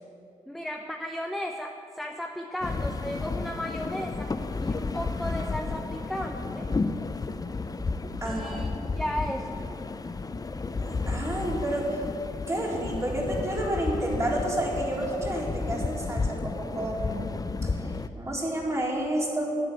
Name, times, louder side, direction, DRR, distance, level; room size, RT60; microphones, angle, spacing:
voice 1, 0.5-4.3 4.6-6.7 8.2-9.6, equal, ahead, 3 dB, 0.9 m, -35 dB
sound 1, 2.6-18.1, left 3 dB, 25° left, 0.7 m, -32 dB
voice 2, 8.2-8.6 10.8-12.0 12.5-17.3 17.6-19.5, right 1 dB, 20° right, -3 dB, 3.8 m, -30 dB
11.0 x 9.0 x 8.4 m, 2.6 s
supercardioid pair, 60°, 14 cm